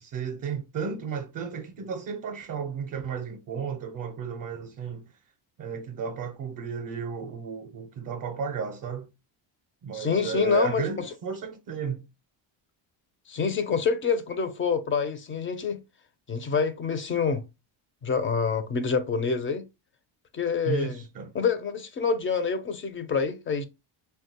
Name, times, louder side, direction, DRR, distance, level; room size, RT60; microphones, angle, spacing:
voice 1, 0.0-5.1 5.6-9.1 9.8-12.1 20.7-21.3, right 5 dB, 45° right, 0.5 m, -33 dB
voice 2, 9.9-10.8 13.3-15.8 16.3-17.4 18.0-19.6 20.3-21.0 21.3-23.6, left 5 dB, 30° left, 0.4 m, -26 dB
3.1 x 2.2 x 2.7 m
cardioid pair, 120°, 47 cm